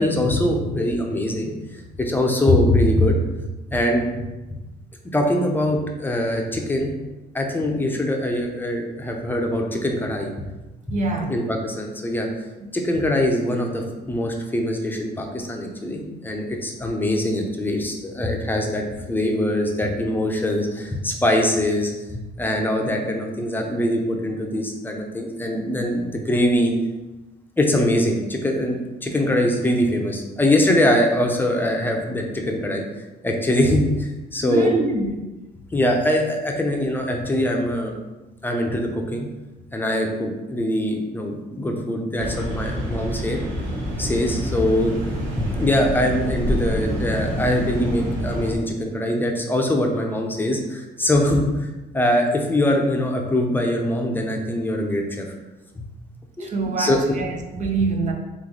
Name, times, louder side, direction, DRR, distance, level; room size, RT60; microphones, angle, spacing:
voice 1, 0.0-3.2 3.7-4.3 5.1-6.9 7.3-10.3 11.3-12.3 12.7-26.7 27.6-32.8 33.2-34.7 35.7-38.0 38.4-39.3 39.7-43.4 44.0-44.9 45.4-51.7 51.9-55.3 55.8-55.9 56.4-57.0, left 1 dB, 10° left, 2 dB, 0.7 m, -22 dB
voice 2, 10.9-11.3 34.4-35.3 56.4-58.1, right 3 dB, 45° right, 3 dB, 0.7 m, -25 dB
sound 1, 42.2-48.5, equal, 85° right, 1.2 m, -27 dB
3.7 x 3.2 x 3.9 m, 1.1 s
cardioid pair, 110°, 17 cm